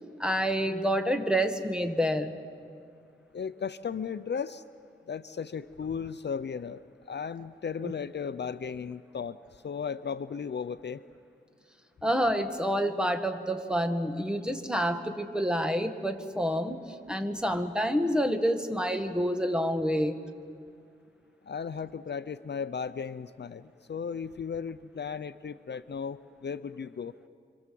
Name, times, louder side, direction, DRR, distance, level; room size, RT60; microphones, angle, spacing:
voice 1, 0.2-2.3 7.8-7.9 12.0-16.8 17.1-20.2, equal, 5° right, 6 dB, 1.7 m, -28 dB
voice 2, 3.3-4.6 5.1-11.0 21.4-27.1, left 6 dB, 60° left, 13 dB, 0.6 m, -36 dB
28.0 x 25.0 x 7.7 m, 2.3 s
wide cardioid pair, 85°, 20 cm